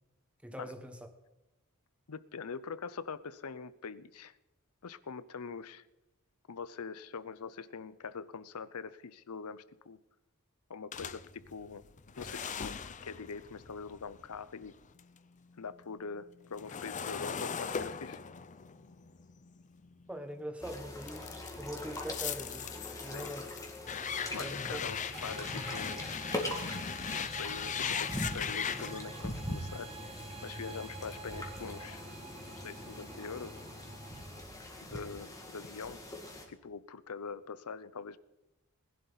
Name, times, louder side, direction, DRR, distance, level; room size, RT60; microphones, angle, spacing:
voice 1, 0.4-1.1 20.1-22.7 23.0-23.5 24.4-24.9, right 1 dB, 5° right, 7 dB, 1.2 m, -42 dB
voice 2, 2.1-4.4 4.8-5.8 6.5-10.0 10.7-11.8 12.2-14.8 15.6-18.2 23.0-23.3 24.0-26.2 27.1-29.9 30.4-32.1 32.5-33.7 34.8-36.0 36.5-38.2, left 5 dB, 80° left, 16 dB, 0.7 m, -43 dB
sound 1, 10.9-15.2 15.5-20.4 21.0-29.0, left 7 dB, 35° left, 0.6 m, -39 dB
sound 2, 20.6-36.4, left 1 dB, 15° left, 2.1 m, -42 dB
sound 3, 25.1-34.4, right 3 dB, 25° right, 1.5 m, -47 dB
20.0 x 11.0 x 4.1 m, 0.99 s
head